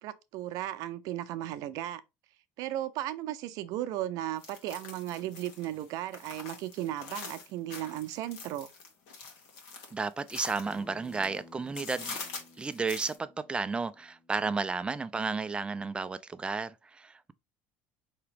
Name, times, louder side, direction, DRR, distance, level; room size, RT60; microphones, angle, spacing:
voice 1, 0.0-2.0 2.6-8.7, right 13 dB, 65° right, 0.5 m, -35 dB
sound 1, 4.4-11.4 11.7-13.2, left 4 dB, 80° left, 1.4 m, -44 dB
voice 2, 9.9-12.2 12.6-17.3, right 4 dB, 15° right, 0.3 m, -33 dB
Acoustic guitar, 10.6-15.8, left 2 dB, 20° left, 1.3 m, -56 dB
4.7 x 2.9 x 3.4 m
cardioid pair, 120°, 7 cm